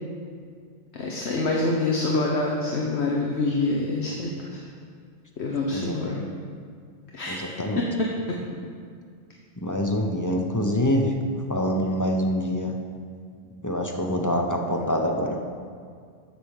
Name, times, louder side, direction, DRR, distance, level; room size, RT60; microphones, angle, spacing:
voice 1, 0.9-4.6 5.4-6.2 7.1-7.5 7.7-7.9, left 2 dB, 60° left, -2 dB, 1.2 m, -26 dB
voice 2, 5.7-6.3 7.3-7.9 9.6-11.1 11.5-12.8 13.6-15.4, left 1 dB, 20° left, 2 dB, 0.6 m, -25 dB
8.1 x 6.0 x 7.1 m, 2.2 s
omnidirectional pair, 1.3 m